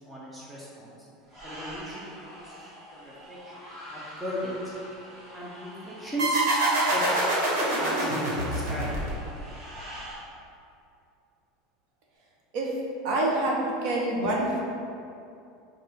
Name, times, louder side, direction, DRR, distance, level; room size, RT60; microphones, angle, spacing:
voice 1, 0.1-1.0 1.4-3.5 3.9-4.7 5.3-6.4 6.9-7.0 7.8-9.0 14.2-14.3, right 1 dB, ahead, -7 dB, 0.5 m, -36 dB
sound 1, 1.3-10.2, equal, 20° right, 0.8 m, -44 dB
sound 2, 6.2-9.5, right 1 dB, 85° right, 1.2 m, -25 dB
voice 2, 13.0-14.6, right 1 dB, 50° right, -2 dB, 0.7 m, -26 dB
5.7 x 2.2 x 3.2 m, 2.5 s
supercardioid pair, 175°, 0 cm